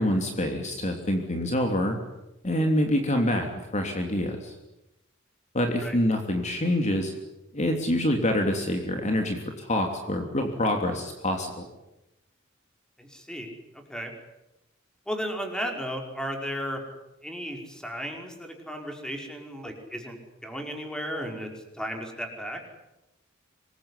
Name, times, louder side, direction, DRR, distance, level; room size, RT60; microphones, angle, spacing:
voice 1, 0.0-2.0 2.4-3.5 3.7-4.5 5.5-7.1 7.5-11.7, left 1 dB, 35° left, 3 dB, 3.1 m, -26 dB
voice 2, 13.0-13.5 13.9-14.1 15.1-16.8 17.2-21.5 21.7-22.6, equal, 5° left, 3 dB, 5.2 m, -34 dB
26.0 x 22.0 x 10.0 m, 0.93 s
head